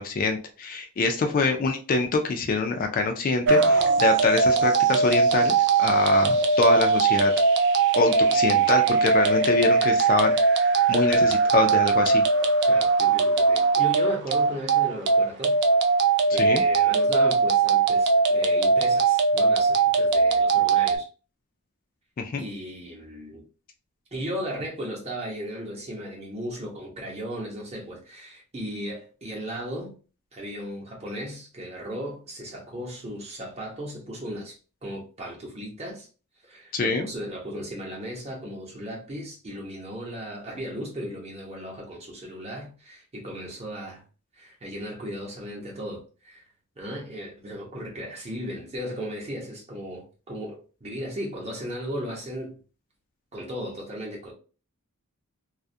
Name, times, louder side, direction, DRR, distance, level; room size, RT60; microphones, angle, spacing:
voice 1, 0.0-7.3 7.9-10.4 10.9-12.2 16.4-16.6 22.2-22.5 36.7-37.1, left 3 dB, 40° left, 0.3 m, -25 dB
sound 1, 3.5-21.0, right 4 dB, 55° right, 0.3 m, -20 dB
voice 2, 12.6-15.6 16.3-21.1 22.4-23.4 24.1-29.9 30.3-36.1 36.4-44.0 44.4-46.5 46.8-52.6 53.3-54.3, equal, 30° right, 0.8 m, -36 dB
2.3 x 2.1 x 2.6 m
head